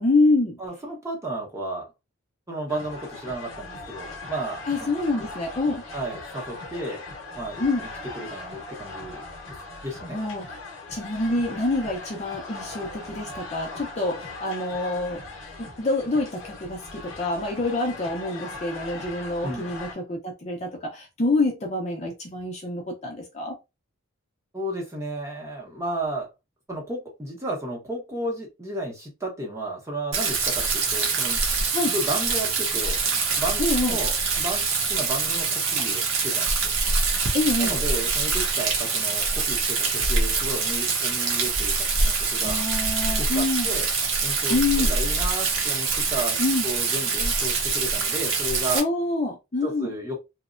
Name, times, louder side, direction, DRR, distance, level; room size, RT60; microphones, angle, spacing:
voice 1, 0.0-0.6 4.7-5.8 7.6-7.8 10.1-10.6 10.9-15.2 15.6-23.6 31.7-31.9 33.6-34.0 37.3-37.8 42.4-43.7 44.5-44.9 46.4-46.7 48.7-49.9, left 2 dB, 30° left, 0.5 m, -26 dB
voice 2, 0.6-1.9 2.5-4.9 5.9-7.0 7.3-7.9 8.1-9.2 9.8-10.2 19.4-19.7 24.5-26.3 26.7-36.7 37.6-42.6 43.2-43.9 44.2-44.6 44.9-48.8 49.6-50.2, right 1 dB, 15° right, 0.8 m, -33 dB
sound 1, 2.7-19.9, left 2 dB, 65° left, 0.7 m, -39 dB
Rain, 30.1-48.8, right 4 dB, 65° right, 0.8 m, -25 dB
2.8 x 2.1 x 2.4 m
head